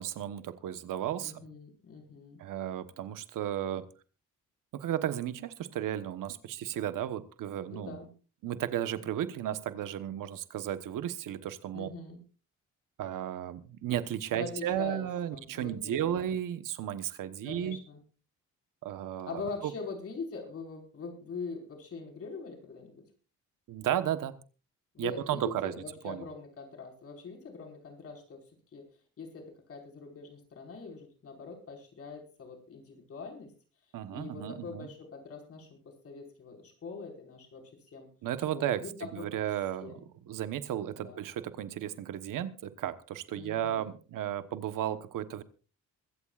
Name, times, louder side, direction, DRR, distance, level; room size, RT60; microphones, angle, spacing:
voice 1, 0.0-1.4 2.4-3.8 4.7-8.0 8.4-11.9 13.0-17.8 18.8-19.7 23.7-24.3 25.0-25.7 26.0-26.2 33.9-34.9 38.2-39.9 40.3-45.4, right 11 dB, 85° right, 11 dB, 1.2 m, -34 dB
voice 2, 1.2-2.4 7.7-8.1 11.7-12.2 14.3-15.0 15.3-16.2 17.4-18.0 19.3-23.0 24.9-28.4 28.7-28.9 29.2-33.5 34.1-35.8 36.0-38.1 38.5-39.3 39.8-40.0 40.9-41.2 43.3-43.9, left 4 dB, 45° left, 2 dB, 5.2 m, -43 dB
23.0 x 16.0 x 2.5 m, 0.35 s
cardioid pair, 165°, 31 cm